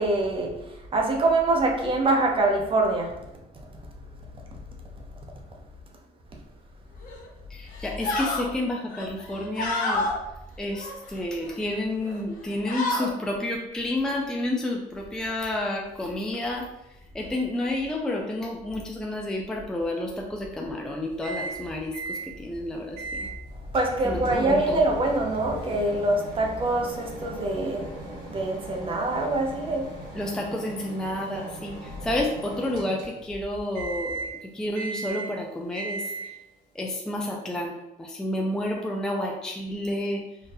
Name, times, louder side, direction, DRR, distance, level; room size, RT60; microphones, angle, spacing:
voice 1, 0.0-3.1 23.7-29.9, right 2 dB, 30° right, 0.7 m, -24 dB
sound 1, 7.0-7.3 7.7-8.5 8.9-10.2 10.7-11.6 12.0-12.2 12.5-13.1, left 2 dB, 55° left, 0.9 m, -30 dB
voice 2, 7.5-10.1 10.6-16.7 17.1-23.3 24.0-24.9 30.1-36.3 36.7-40.2, left 1 dB, 5° left, 0.4 m, -30 dB
Microwave oven, 21.2-21.6 21.9-22.3 23.0-23.3 23.7-33.4 33.7-34.4 34.7-35.4 35.7-36.4, right 3 dB, 75° right, 1.2 m, -38 dB
3.9 x 2.5 x 2.6 m
cardioid pair, 110°, 17 cm